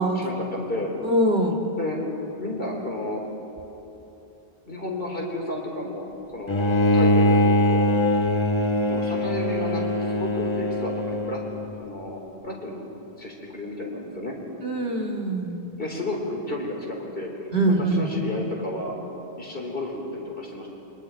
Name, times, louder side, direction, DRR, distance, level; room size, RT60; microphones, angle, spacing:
voice 1, 0.0-0.9 1.8-2.0 2.4-3.2 4.6-6.1 6.3-7.4 7.7-7.9 8.9-11.4 11.8-12.8 13.2-14.4 15.8-17.3 17.9-19.0 19.4-20.7, left 1 dB, 55° left, -1 dB, 4.0 m, -32 dB
voice 2, 1.0-1.6 14.6-15.6 17.5-18.1, right 1 dB, 75° right, 0 dB, 2.4 m, -23 dB
Bowed string instrument, 6.5-11.7, left 1 dB, 30° left, 1.0 m, -22 dB
29.5 x 24.0 x 4.6 m, 3.0 s
omnidirectional pair, 1.1 m